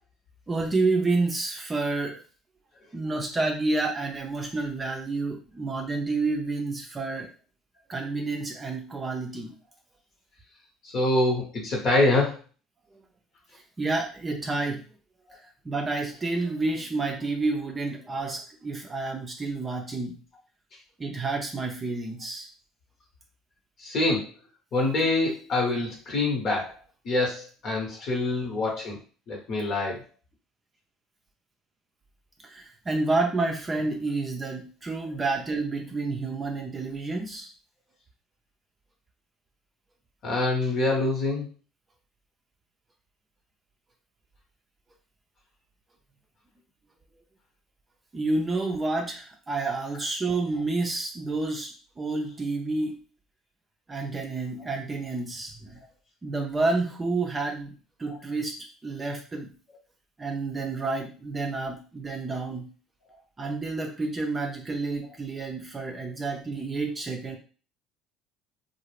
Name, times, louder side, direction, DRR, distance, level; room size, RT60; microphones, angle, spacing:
voice 1, 0.5-2.2 2.9-7.3 7.9-9.5 13.8-14.8 15.7-20.2 21.0-22.5 32.4-37.5 48.1-53.0 53.9-55.8 56.2-58.6 58.8-59.5 60.2-62.7 63.4-67.4, right 3 dB, 25° right, 2 dB, 0.5 m, -29 dB
voice 2, 10.8-12.4 15.3-15.4 23.8-24.3 24.7-26.8 27.0-29.0 29.3-30.0 40.2-41.5 58.1-58.2, left 2 dB, 50° left, 0 dB, 1.0 m, -25 dB
2.3 x 2.0 x 3.2 m, 0.37 s
hypercardioid pair, 70°, 0 cm